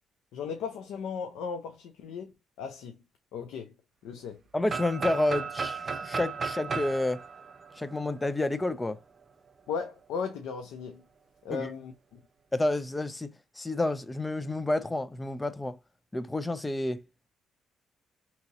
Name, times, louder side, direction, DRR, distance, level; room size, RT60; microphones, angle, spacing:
voice 1, 0.3-2.3 2.6-3.0 3.3-3.7 4.0-4.4 9.7-11.0 11.4-12.2, left 6 dB, 90° left, 0.5 m, -36 dB
voice 2, 4.5-7.2 7.8-9.0 11.5-11.7 12.5-15.8 16.1-17.0, left 2 dB, 15° left, 0.4 m, -30 dB
sound 1, 4.7-8.5, right 5 dB, 40° right, 0.5 m, -35 dB
2.9 x 2.7 x 3.8 m
cardioid pair, 90°, 0 cm